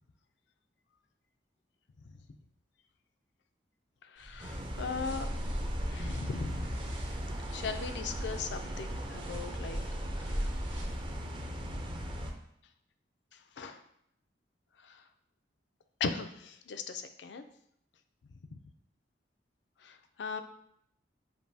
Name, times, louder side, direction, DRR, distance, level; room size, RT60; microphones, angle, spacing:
voice 1, 4.0-5.3 5.9-6.8 7.5-9.8 10.2-10.5 13.3-13.8 14.8-15.0 16.0-17.4 18.5-18.6 19.8-20.4, left 5 dB, 70° left, 8 dB, 0.4 m, -39 dB
sound 1, 4.2-11.1, equal, 80° right, 1.3 m, -40 dB
sound 2, 4.4-12.3, equal, 30° right, 0.5 m, -39 dB
7.4 x 2.7 x 2.7 m, 0.72 s
head